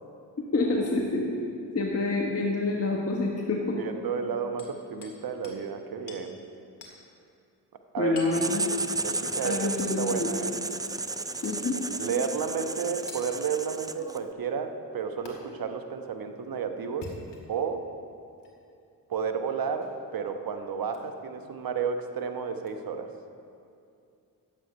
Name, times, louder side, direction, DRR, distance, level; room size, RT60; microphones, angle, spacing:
voice 1, 0.5-1.3 1.7-3.8 8.0-8.7 9.4-10.3 11.4-11.7, left 3 dB, 30° left, -2 dB, 1.5 m, -27 dB
voice 2, 3.8-6.4 7.9-8.1 9.0-10.6 12.0-17.1 17.5-17.9 19.1-23.1, right 6 dB, 50° right, 7 dB, 1.1 m, -32 dB
Hammer, 4.6-5.2 5.4-5.6 6.1-6.3 6.8-7.0 8.2-8.4 9.8-10.0 11.4-11.6 13.1-13.3 15.3-15.4 16.9-17.6 18.4-18.5 19.8-20.0 20.9-21.1 22.6-22.7, left 4 dB, 65° left, 2.0 m, -45 dB
Writing, 8.3-14.3, right 3 dB, 10° right, 0.4 m, -33 dB
11.0 x 7.9 x 5.3 m, 2.5 s
hypercardioid pair, 45°, 45 cm